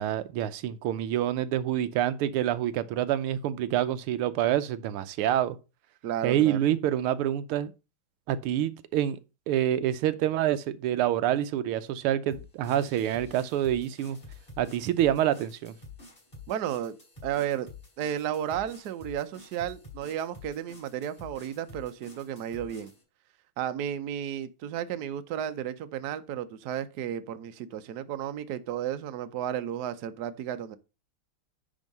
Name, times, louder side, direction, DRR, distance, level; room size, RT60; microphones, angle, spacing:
voice 1, 0.0-5.6 6.2-7.7 8.3-9.2 9.5-14.2 14.6-15.8, right 11 dB, 85° right, 1.6 m, -27 dB
voice 2, 6.0-6.6 16.5-17.0 17.2-17.7 18.0-22.9 23.6-30.8, right 10 dB, 65° right, 1.1 m, -33 dB
sound 1, 12.3-23.0, left 3 dB, 20° left, 4.6 m, -49 dB
10.0 x 3.7 x 5.3 m
omnidirectional pair, 2.4 m